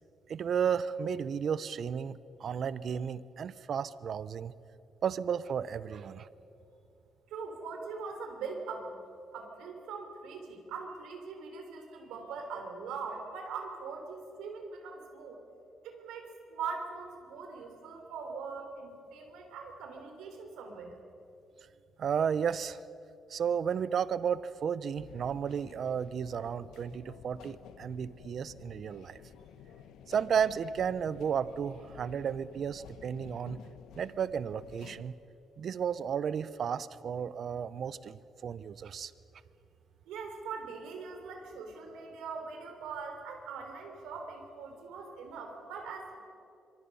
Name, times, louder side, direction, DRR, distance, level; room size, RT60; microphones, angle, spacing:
voice 1, 0.3-4.5 5.0-6.3 22.0-22.8 23.3-29.2 30.1-33.6 33.9-35.1 35.6-39.1, right 7 dB, 60° right, 16 dB, 0.7 m, -33 dB
voice 2, 7.3-8.9 9.3-15.4 15.8-21.0 40.1-46.2, right 5 dB, 90° right, 3 dB, 3.7 m, -41 dB
sound 1, 24.9-35.0, left 9 dB, 85° left, 0.9 m, -52 dB
25.5 x 23.5 x 5.5 m, 2.7 s
cardioid pair, 90°, 0 cm